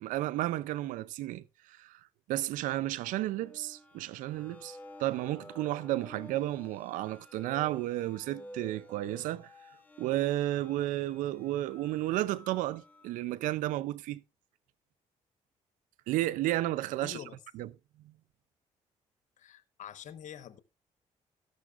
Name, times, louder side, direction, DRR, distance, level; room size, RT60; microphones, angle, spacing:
voice 1, 0.0-2.0 2.3-9.5 10.0-14.2 16.1-17.2 17.5-17.7, right 15 dB, 85° right, 0.5 m, -32 dB
sound 1, 3.0-13.2, equal, 15° left, 2.5 m, -52 dB
voice 2, 17.0-17.7 19.4-20.6, left 9 dB, 70° left, 1.1 m, -46 dB
13.0 x 11.5 x 2.4 m
supercardioid pair, 65°, 13 cm